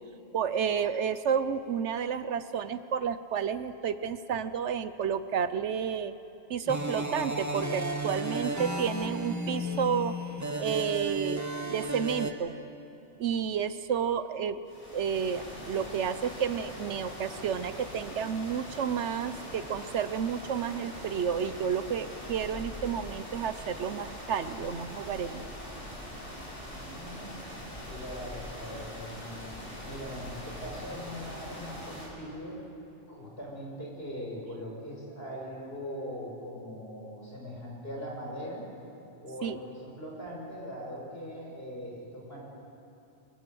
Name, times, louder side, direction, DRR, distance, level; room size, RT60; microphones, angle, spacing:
voice 1, 0.3-6.1 6.5-10.1 10.6-12.5 13.2-14.6 14.9-25.5 39.4-39.6, right 7 dB, 75° right, 13 dB, 1.1 m, -31 dB
sound 1, 6.7-12.3, right 1 dB, 15° right, 1.2 m, -33 dB
sound 2, 14.6-32.1, equal, 30° left, 7.0 m, -42 dB
voice 2, 26.7-27.4 27.9-32.6 33.1-38.6 39.2-42.5, equal, 55° left, -2 dB, 6.1 m, -41 dB
23.0 x 22.5 x 7.8 m, 2.8 s
omnidirectional pair, 1.2 m